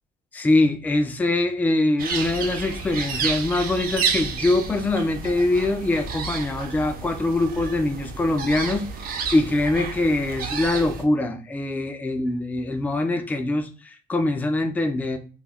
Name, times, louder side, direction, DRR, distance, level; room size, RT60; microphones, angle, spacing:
voice 1, 0.3-15.2, left 2 dB, 10° left, 7 dB, 0.3 m, -23 dB
sound 1, 2.0-11.0, right 5 dB, 60° right, 0.5 m, -31 dB
2.4 x 2.1 x 3.3 m, 0.38 s
cardioid pair, 110°, 17 cm